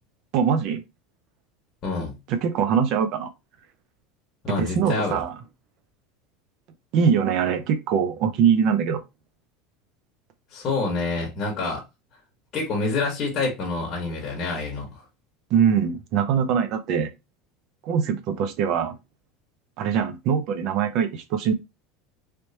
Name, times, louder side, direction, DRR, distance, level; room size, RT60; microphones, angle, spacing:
voice 1, 0.3-0.8 2.3-3.3 4.6-5.3 6.9-9.0 15.5-17.1 17.8-19.0 19.8-21.5, right 7 dB, 50° right, 0.6 m, -22 dB
voice 2, 1.8-2.2 4.4-5.2 10.5-11.8 12.5-15.0, left 3 dB, 30° left, 1.3 m, -27 dB
3.3 x 3.1 x 2.8 m
supercardioid pair, 155°, 0 cm